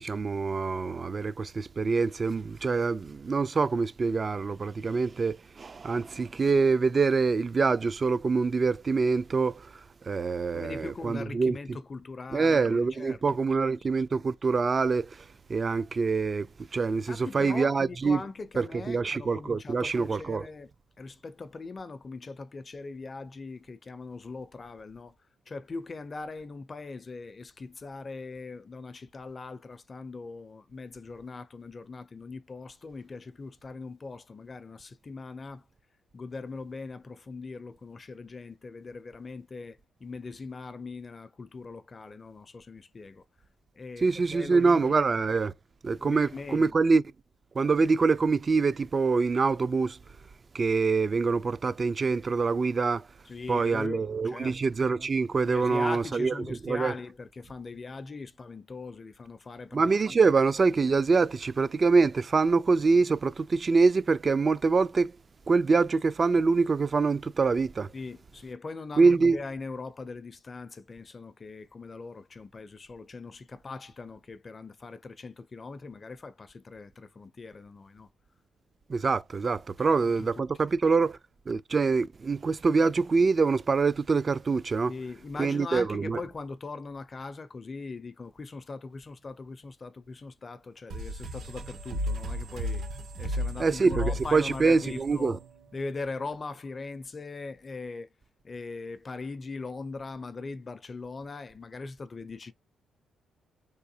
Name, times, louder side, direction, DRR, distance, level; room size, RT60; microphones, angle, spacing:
voice 1, 0.0-11.6 12.3-18.2 18.6-20.5 44.0-45.5 45.8-47.0 47.5-50.0 50.5-53.1 53.5-56.9 59.7-65.1 65.5-67.9 69.0-69.4 78.9-81.2 81.5-84.9 85.4-86.2 93.6-95.4, right 4 dB, 40° right, 0.4 m, -25 dB
voice 2, 10.5-13.4 17.0-20.7 21.0-25.2 25.5-35.7 36.1-43.2 43.7-45.0 46.0-46.8 53.3-54.7 55.5-60.2 67.9-78.1 80.0-80.6 84.9-92.9 93.2-95.4 95.7-98.1 98.4-102.5, left 3 dB, 35° left, 0.5 m, -40 dB
sound 1, 90.9-96.2, equal, 75° right, 2.2 m, -35 dB
3.5 x 2.6 x 2.7 m
cardioid pair, 80°, 0 cm